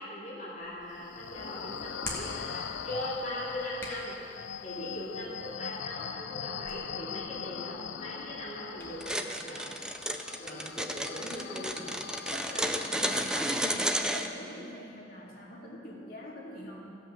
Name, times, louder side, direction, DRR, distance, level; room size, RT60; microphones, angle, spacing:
voice 1, 0.0-4.2 4.6-9.7 10.4-12.0, left 1 dB, 35° left, -12 dB, 2.9 m, -40 dB
Hands, 0.6-9.0, left 1 dB, 15° left, 1.6 m, -48 dB
sound 1, 0.9-14.3, left 8 dB, 80° left, 0.4 m, -42 dB
sound 2, 9.0-14.3, right 1 dB, 5° right, 0.4 m, -32 dB
voice 2, 11.1-11.9 12.3-16.8, left 1 dB, 55° left, -3 dB, 2.2 m, -44 dB
16.0 x 5.4 x 7.1 m, 2.7 s
head